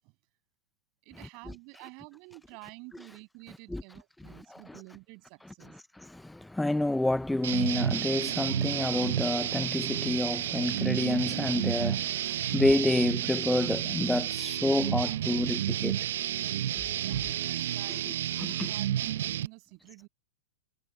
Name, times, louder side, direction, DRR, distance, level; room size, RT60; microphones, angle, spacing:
voice 1, 1.0-5.8 17.0-18.3 18.7-20.1, right 31 dB, 35° right, 6.3 m, -50 dB
voice 2, 6.1-16.0 18.4-18.7, left 1 dB, 5° left, 0.3 m, -28 dB
sound 1, 7.4-19.5, right 11 dB, 65° right, 0.5 m, -31 dB
supercardioid pair, 175°, 0 cm